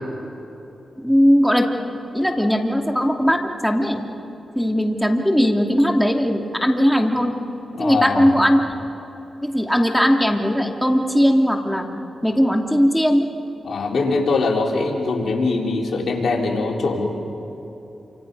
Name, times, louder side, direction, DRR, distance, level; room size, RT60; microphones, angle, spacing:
voice 1, 1.0-1.7 2.1-4.0 4.6-7.3 7.8-8.6 9.4-11.9 12.2-13.3, equal, ahead, 2 dB, 2.7 m, -18 dB
voice 2, 7.7-8.3 13.6-17.0, left 3 dB, 70° left, -1 dB, 4.0 m, -22 dB
28.0 x 26.5 x 5.5 m, 3.0 s
cardioid pair, 60°, 0 cm